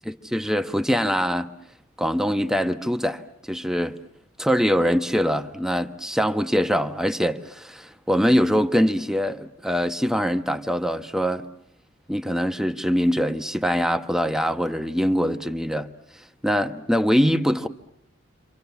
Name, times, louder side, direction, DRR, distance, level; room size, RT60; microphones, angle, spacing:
voice 1, 0.2-1.5 2.0-4.0 4.4-11.5 12.1-15.9 16.4-17.7, equal, 5° right, 1.0 m, -23 dB
29.5 x 25.5 x 7.0 m
head